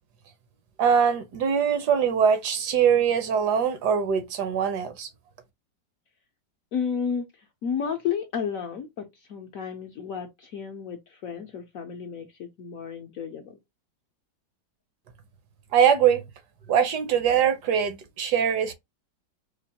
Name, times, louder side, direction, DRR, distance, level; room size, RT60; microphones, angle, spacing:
voice 1, 0.8-5.1 15.7-16.2 16.7-18.7, right 7 dB, 70° right, 1.2 m, -22 dB
voice 2, 6.7-7.2 7.6-13.6, left 7 dB, 70° left, 0.8 m, -32 dB
4.5 x 2.4 x 2.7 m
omnidirectional pair, 2.0 m